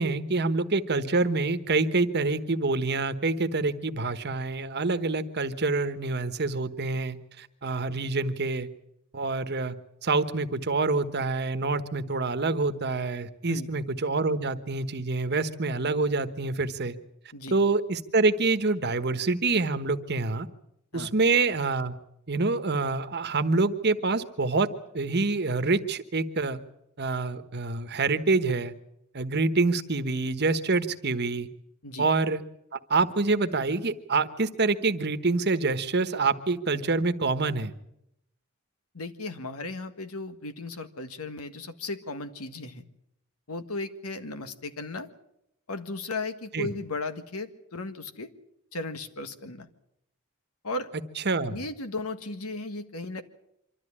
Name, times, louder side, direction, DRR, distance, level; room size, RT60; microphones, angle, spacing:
voice 1, 0.0-8.7 9.1-9.7 10.0-17.0 17.5-20.5 20.9-21.9 22.3-24.7 24.9-26.6 27.0-28.7 29.1-31.5 32.0-32.4 32.7-37.7 46.5-46.7 51.2-51.6, right 3 dB, 50° right, 11 dB, 1.2 m, -26 dB
voice 2, 38.9-42.9 43.5-45.1 45.7-48.3 48.7-49.7 50.6-50.9 51.5-53.2, left 2 dB, 85° left, 9 dB, 1.8 m, -36 dB
25.5 x 13.5 x 9.9 m, 0.80 s
head